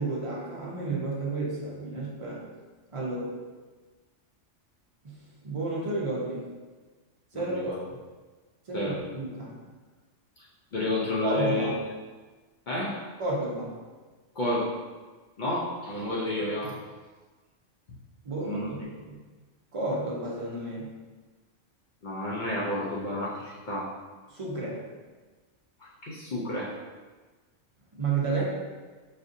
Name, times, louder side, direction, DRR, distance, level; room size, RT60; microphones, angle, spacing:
voice 1, 0.0-2.4 2.9-3.3 5.0-5.2 5.4-6.5 7.3-8.0 8.7-9.6 11.2-11.7 13.2-13.7 18.2-19.2 19.7-20.9 24.3-24.8 28.0-28.4, right 3 dB, 35° right, -4 dB, 0.6 m, -31 dB
voice 2, 7.3-7.8 8.7-9.0 10.7-11.7 12.7-13.0 14.4-14.7 15.4-16.8 18.4-18.7 22.0-23.9 25.8-26.7, left 1 dB, 55° left, -6 dB, 0.6 m, -30 dB
4.2 x 2.5 x 2.5 m, 1.3 s
omnidirectional pair, 1.3 m